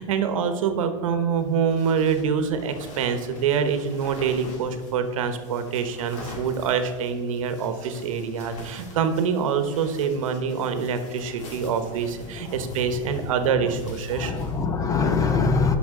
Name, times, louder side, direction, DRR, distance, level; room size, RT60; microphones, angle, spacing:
voice 1, 0.0-14.3, right 6 dB, 75° right, 9 dB, 1.0 m, -25 dB
sound 1, 1.4-14.6, left 2 dB, 45° left, 2.6 m, -45 dB
voice 2, 12.3-15.8, left 4 dB, 20° left, 7 dB, 0.7 m, -26 dB
11.0 x 5.7 x 3.7 m, 1.5 s
supercardioid pair, 130°, 17 cm